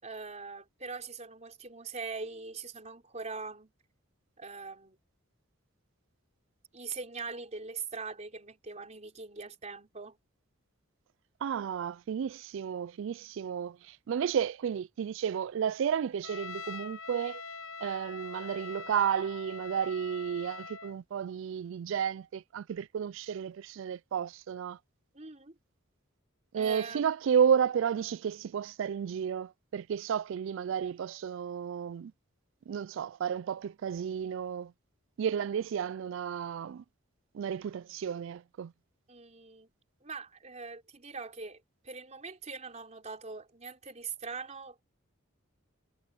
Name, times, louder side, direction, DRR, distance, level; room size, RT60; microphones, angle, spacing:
voice 1, 0.0-3.7 4.4-5.0 6.7-10.2 25.1-25.6 26.5-27.1 39.1-39.7 40.0-44.8, right 4 dB, 35° right, 4.0 m, -42 dB
voice 2, 11.4-17.4 17.8-24.8 26.5-32.1 32.7-34.7 35.2-36.8 37.3-38.7, right 8 dB, 65° right, 0.3 m, -32 dB
Trumpet, 16.2-21.0, left 4 dB, 70° left, 1.0 m, -44 dB
head